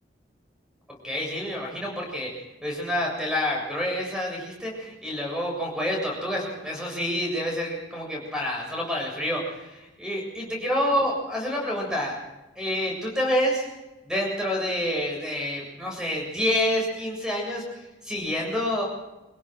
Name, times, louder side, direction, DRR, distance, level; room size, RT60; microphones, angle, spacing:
voice 1, 0.9-2.3 2.6-12.2 12.6-13.7 14.1-18.8, left 1 dB, 5° right, -1 dB, 7.4 m, -28 dB
25.5 x 16.5 x 6.2 m, 1.0 s
head